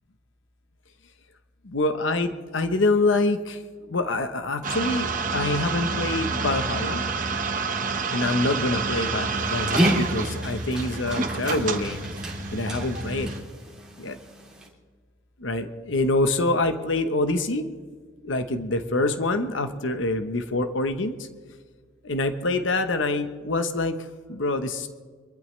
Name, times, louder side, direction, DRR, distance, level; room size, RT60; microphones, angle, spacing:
voice 1, 1.6-3.6 3.9-7.0 8.1-12.1 12.5-13.3 14.0-14.2 15.4-17.7 18.2-21.3 22.0-24.9, left 2 dB, 75° left, 8 dB, 1.1 m, -26 dB
sound 1, 4.6-13.4, right 4 dB, 45° right, 1.4 m, -29 dB
Dog, 9.3-14.7, equal, 5° right, 3.1 m, -31 dB
24.5 x 14.0 x 3.3 m, 1.5 s
head